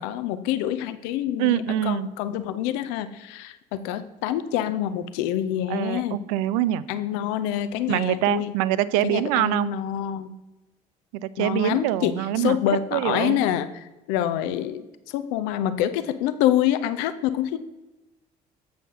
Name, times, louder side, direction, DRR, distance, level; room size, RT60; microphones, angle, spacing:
voice 1, 0.0-6.2 6.9-8.5 9.0-10.3 11.4-17.6, left 11 dB, 60° left, 11 dB, 0.5 m, -26 dB
voice 2, 1.4-2.1 5.7-6.8 7.9-9.7 11.1-12.6 12.9-13.4, right 13 dB, 65° right, 17 dB, 0.4 m, -24 dB
7.6 x 4.2 x 6.2 m, 1.0 s
figure-of-eight pair, 50°, 20 cm